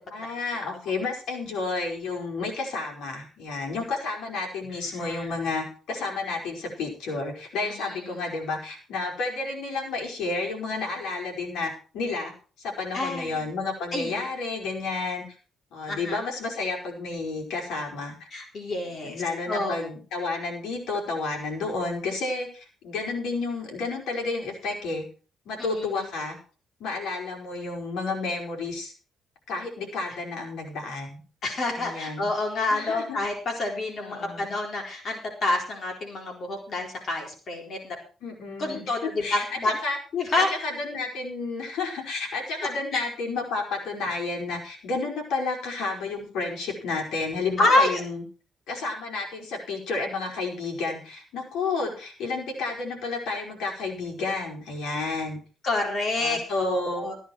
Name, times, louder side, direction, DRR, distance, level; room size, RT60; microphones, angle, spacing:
voice 1, 0.1-12.3 12.6-15.2 15.7-18.1 18.8-25.0 25.4-26.4 26.8-28.9 29.5-31.2 31.7-32.3 32.7-33.2 34.0-34.5 38.2-40.0 40.3-48.2 48.7-55.4 56.2-57.1, left 3 dB, 80° left, 1 dB, 5.0 m, -31 dB
voice 2, 5.0-5.3 7.6-8.0 12.9-13.4 13.9-14.2 15.9-16.2 18.3-19.2 19.5-19.8 25.6-25.9 31.4-38.0 38.6-39.8 40.1-40.5 42.9-43.0 47.6-48.0 55.6-57.2, left 2 dB, 55° left, 2 dB, 4.1 m, -28 dB
14.5 x 10.0 x 4.6 m, 0.38 s
cardioid pair, 90°, 0 cm